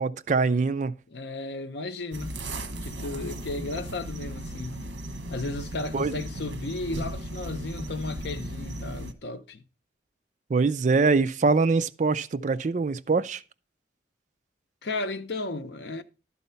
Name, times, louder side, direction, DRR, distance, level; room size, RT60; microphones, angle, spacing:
voice 1, 0.0-0.9 5.9-6.2 10.5-13.4, right 4 dB, 40° right, 0.3 m, -23 dB
voice 2, 1.1-2.4 2.8-4.8 5.3-9.6 14.8-16.0, left 2 dB, 65° left, 0.7 m, -34 dB
sound 1, 2.1-9.1, right 1 dB, 85° right, 1.1 m, -36 dB
12.0 x 4.2 x 5.6 m
head